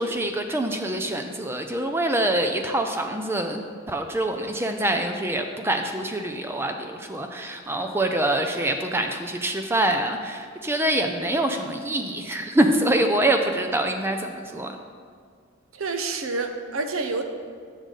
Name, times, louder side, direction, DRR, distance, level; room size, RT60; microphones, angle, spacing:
voice 1, 0.0-14.7, right 1 dB, 10° right, 5 dB, 0.4 m, -25 dB
voice 2, 15.7-17.2, right 3 dB, 85° right, 6 dB, 0.7 m, -28 dB
8.0 x 6.4 x 3.8 m, 2.1 s
head